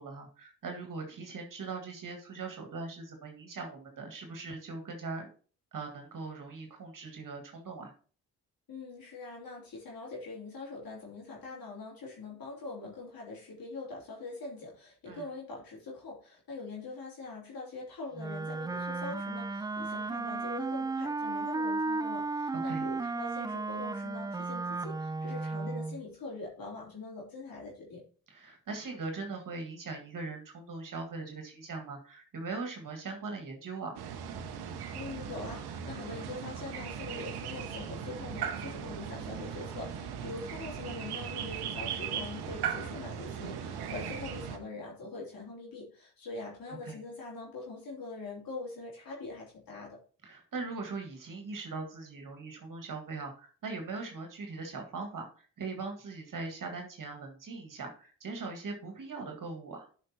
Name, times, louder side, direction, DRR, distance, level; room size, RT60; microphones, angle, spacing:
voice 1, 0.0-5.3 5.7-7.9 15.1-15.3 22.5-22.9 28.3-34.0 44.0-44.1 46.7-47.0 50.2-59.9, right 3 dB, 55° right, 3 dB, 1.8 m, -40 dB
voice 2, 8.7-28.0 34.9-50.0, left 3 dB, 60° left, -4 dB, 3.1 m, -43 dB
Wind instrument woodwind instrument, 18.2-26.0, right 3 dB, 10° right, 0.3 m, -34 dB
sound 1, 34.0-44.6, right 8 dB, 75° right, 1.0 m, -38 dB
12.0 x 5.2 x 2.8 m, 0.40 s
hypercardioid pair, 45°, 38 cm